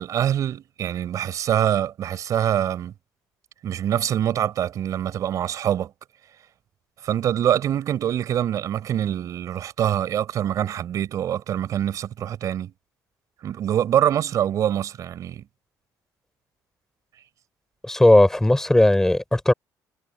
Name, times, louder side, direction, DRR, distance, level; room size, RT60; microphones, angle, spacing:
voice 1, 0.0-2.9 3.6-5.9 7.0-12.7 13.4-15.4, right 10 dB, 55° right, 6.1 m, -24 dB
voice 2, 17.8-19.5, left 1 dB, 5° left, 6.0 m, -17 dB
cardioid pair, 135°, 7 cm